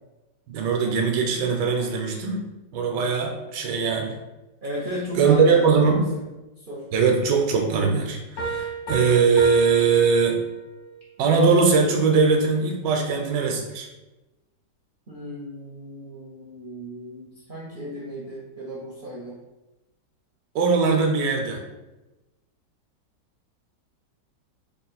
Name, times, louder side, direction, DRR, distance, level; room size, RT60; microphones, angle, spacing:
voice 1, 0.5-2.5 2.7-4.1 5.1-6.0 6.9-10.4 11.2-13.9 20.5-21.6, right 5 dB, 90° right, 2 dB, 1.3 m, -21 dB
voice 2, 4.6-6.0 6.6-6.8 15.1-19.3, equal, 70° right, -5 dB, 0.5 m, -35 dB
sound 1, 8.4-10.9, right 5 dB, 60° left, 1.3 m, -31 dB
3.6 x 2.3 x 4.0 m, 1.0 s
omnidirectional pair, 1.9 m